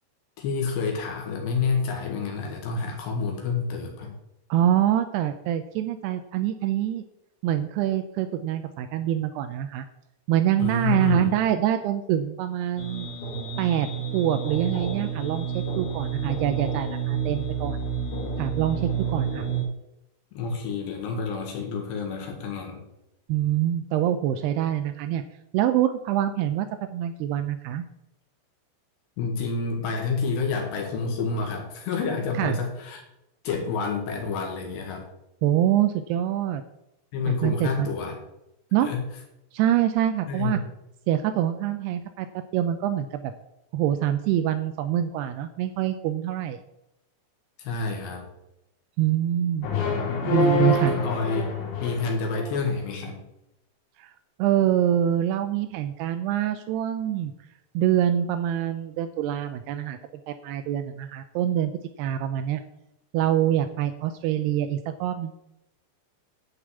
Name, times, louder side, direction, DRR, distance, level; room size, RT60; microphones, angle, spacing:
voice 1, 0.4-4.2 10.6-11.3 20.3-22.8 29.2-33.0 33.4-35.1 37.1-38.2 38.8-39.0 40.3-40.6 47.6-48.2 50.7-51.5 51.8-53.2, left 4 dB, 75° left, 2 dB, 3.7 m, -28 dB
voice 2, 4.5-7.0 7.4-9.9 10.3-13.1 13.6-17.8 18.4-19.5 23.3-25.2 25.5-27.8 32.4-32.6 35.4-36.6 37.3-37.9 38.7-38.9 39.5-40.6 41.1-43.3 43.7-46.6 49.0-49.7 50.3-51.0 54.0-54.1 54.4-57.3 57.7-60.0 60.3-61.7 62.0-62.6 63.1-65.3, right 11 dB, 80° right, 8 dB, 2.4 m, -25 dB
sound 1, 12.8-19.6, right 6 dB, 50° left, 3.3 m, -30 dB
sound 2, 49.6-52.6, left 3 dB, 90° left, 4.6 m, -26 dB
10.5 x 5.1 x 8.2 m, 0.88 s
omnidirectional pair, 5.2 m